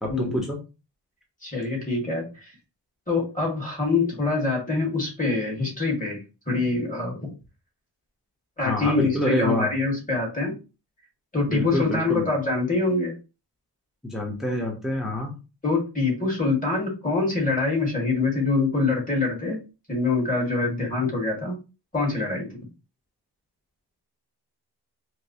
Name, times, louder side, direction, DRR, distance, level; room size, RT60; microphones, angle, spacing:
voice 1, 0.0-0.6 8.6-9.7 11.5-12.2 14.0-15.3, left 1 dB, ahead, -1 dB, 0.8 m, -27 dB
voice 2, 1.4-2.5 3.1-7.3 8.6-10.5 11.3-13.1 15.6-19.6 19.9-21.6 21.9-22.5, left 3 dB, 20° left, -1 dB, 1.7 m, -25 dB
4.5 x 2.1 x 2.7 m, 0.30 s
wide cardioid pair, 85°, 41 cm